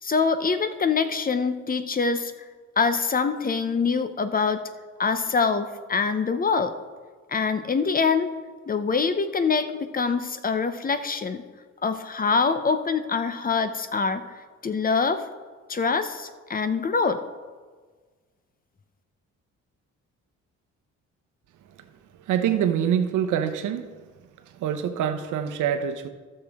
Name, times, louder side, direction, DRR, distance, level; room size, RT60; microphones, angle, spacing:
voice 1, 0.0-2.3 2.8-4.6 5.0-6.7 7.3-8.3 8.7-11.4 11.8-14.2 14.6-15.2 15.7-17.2, left 5 dB, 30° left, 10 dB, 0.6 m, -24 dB
voice 2, 22.3-23.9 24.6-26.1, right 9 dB, 80° right, 8 dB, 0.9 m, -25 dB
14.5 x 6.5 x 3.5 m, 1.5 s
cardioid pair, 90°, 30 cm